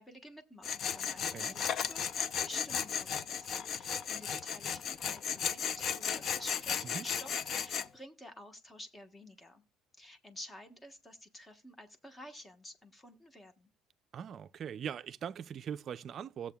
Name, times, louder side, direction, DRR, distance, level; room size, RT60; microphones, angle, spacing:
voice 1, 0.0-9.6 10.0-13.7, left 1 dB, 15° left, 1.3 m, -51 dB
Tools, 0.6-7.9, left 7 dB, 45° left, 0.5 m, -35 dB
voice 2, 14.1-16.5, right 8 dB, 40° right, 0.4 m, -41 dB
17.5 x 7.3 x 2.3 m
cardioid pair, 135°, 0 cm